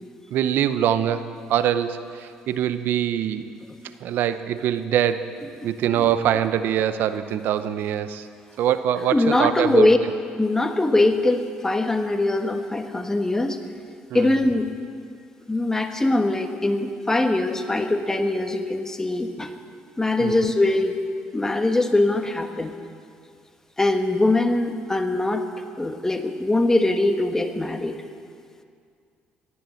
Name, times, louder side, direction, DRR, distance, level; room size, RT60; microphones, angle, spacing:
voice 1, 0.3-2.0 2.5-3.5 4.0-5.3 5.6-8.2 8.6-9.9 14.1-14.3 20.2-20.4, right 10 dB, 75° right, 12 dB, 0.8 m, -23 dB
voice 2, 9.1-10.0 10.4-13.6 14.1-14.7 15.5-19.5 20.0-21.0 21.3-22.7 23.8-25.5 25.8-28.0, left 2 dB, 15° left, 6 dB, 1.4 m, -22 dB
15.5 x 10.0 x 7.8 m, 2.3 s
supercardioid pair, 80°, 3 cm